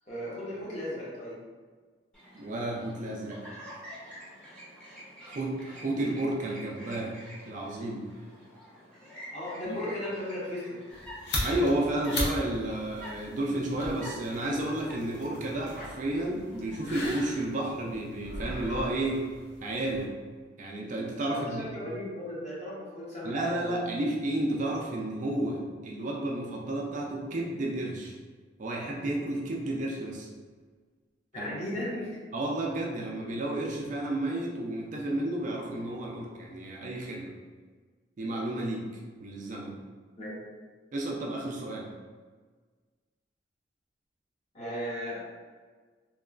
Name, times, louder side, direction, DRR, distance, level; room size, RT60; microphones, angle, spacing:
voice 1, 0.1-1.4 9.3-10.8 21.3-23.9 31.3-32.2 40.2-40.4 44.5-45.2, left 1 dB, 40° left, -7 dB, 0.8 m, -36 dB
Chirp tweet, 2.1-17.3, equal, 5° left, 0.7 m, -49 dB
voice 2, 2.3-3.4 5.3-7.2 7.5-8.0 9.6-9.7 11.4-19.3 19.6-20.1 20.6-21.7 23.2-28.2 28.6-30.3 31.4-31.5 32.3-37.3 38.2-38.9 39.2-39.8 40.9-41.9, right 1 dB, 45° right, -1 dB, 0.4 m, -32 dB
sound 1, 10.9-20.1, left 1 dB, 70° left, 0.6 m, -38 dB
2.9 x 2.3 x 2.3 m, 1.5 s
head